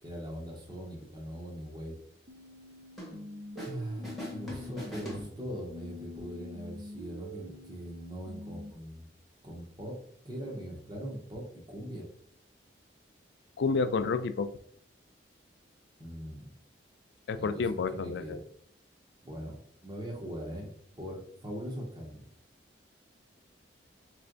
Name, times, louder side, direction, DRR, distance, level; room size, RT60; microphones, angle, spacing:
voice 1, 0.0-2.0 3.6-9.1 9.4-9.9 10.2-12.1 16.0-16.4 17.4-18.4 19.2-19.5 19.8-20.7 21.0-22.2, equal, 20° right, -1 dB, 1.0 m, -41 dB
sound 1, 2.3-5.3 5.7-8.7, left 2 dB, 40° right, 0.5 m, -46 dB
sound 2, 3.0-3.8 4.0-5.8, equal, ahead, 1.0 m, -42 dB
voice 2, 13.6-14.5 17.3-18.4, left 4 dB, 65° left, 12 dB, 0.4 m, -30 dB
3.5 x 3.2 x 3.8 m, 0.62 s
head